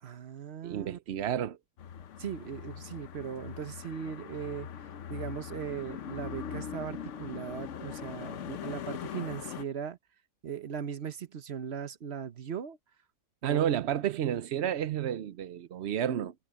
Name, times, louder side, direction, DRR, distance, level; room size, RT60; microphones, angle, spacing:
voice 1, 0.0-1.0 2.2-4.7 5.1-10.0 10.4-12.8 13.4-13.7, right 7 dB, 45° right, 1.1 m, -38 dB
voice 2, 0.6-1.6 13.4-16.3, right 10 dB, 65° right, 0.6 m, -31 dB
sound 1, 1.8-9.6, left 8 dB, 55° left, 0.9 m, -41 dB
omnidirectional pair, 1.9 m